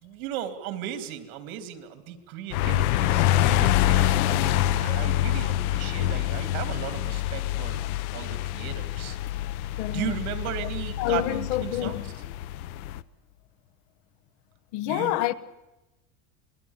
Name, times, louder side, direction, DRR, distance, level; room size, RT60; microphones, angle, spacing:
voice 1, 0.0-7.8 8.1-9.2 9.9-12.0 14.8-15.2, right 10 dB, 75° right, 3.0 m, -36 dB
sound 1, 2.5-13.0, left 13 dB, 80° left, 0.9 m, -26 dB
voice 2, 9.8-10.1 11.0-12.1 14.7-15.3, left 15 dB, 60° left, 1.1 m, -27 dB
26.5 x 20.0 x 7.3 m
cardioid pair, 165°, 42 cm